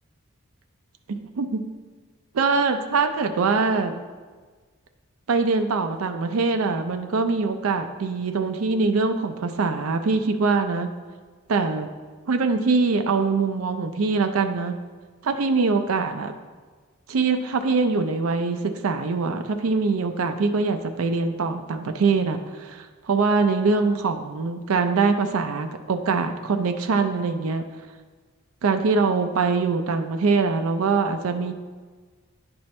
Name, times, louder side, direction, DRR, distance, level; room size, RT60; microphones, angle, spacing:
voice 1, 1.1-1.6 2.4-3.9 5.3-10.9 11.5-11.9 12.3-14.8 15.2-16.3 17.1-27.6 28.6-31.5, right 4 dB, 85° right, 7 dB, 0.5 m, -23 dB
10.0 x 4.4 x 3.2 m, 1.4 s
head